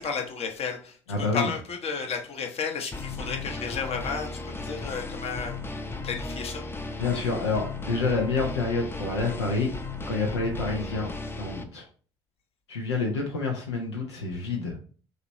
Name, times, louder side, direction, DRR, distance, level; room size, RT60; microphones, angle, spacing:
voice 1, 0.0-5.6 6.0-6.6, left 5 dB, 45° left, 4 dB, 1.1 m, -33 dB
voice 2, 1.1-1.5 7.0-9.7 10.1-11.1 11.4-11.8 12.7-14.7, left 3 dB, 80° left, 1 dB, 0.7 m, -28 dB
sound 1, 2.9-11.6, left 3 dB, 15° left, 0.7 m, -36 dB
5.1 x 3.1 x 3.0 m, 0.41 s
figure-of-eight pair, 50°, 14 cm